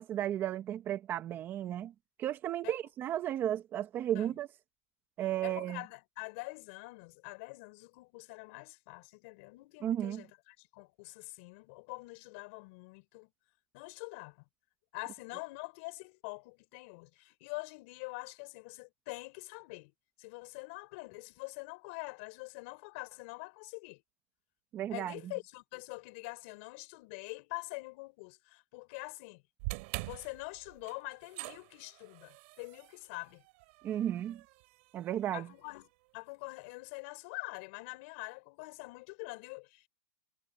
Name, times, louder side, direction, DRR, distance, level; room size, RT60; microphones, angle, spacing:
voice 1, 0.0-1.9 2.2-4.5 5.2-5.8 9.8-10.2 24.7-25.1 33.8-34.4 34.9-35.5, right 11 dB, 25° right, 1.3 m, -34 dB
voice 2, 5.4-13.3 13.7-14.5 14.9-19.9 20.2-24.0 24.9-29.4 30.0-33.4 35.3-39.9, left 28 dB, 45° left, 5.7 m, -45 dB
sound 1, 29.6-35.9, right 27 dB, 45° right, 4.7 m, -45 dB
supercardioid pair, 155°, 9 cm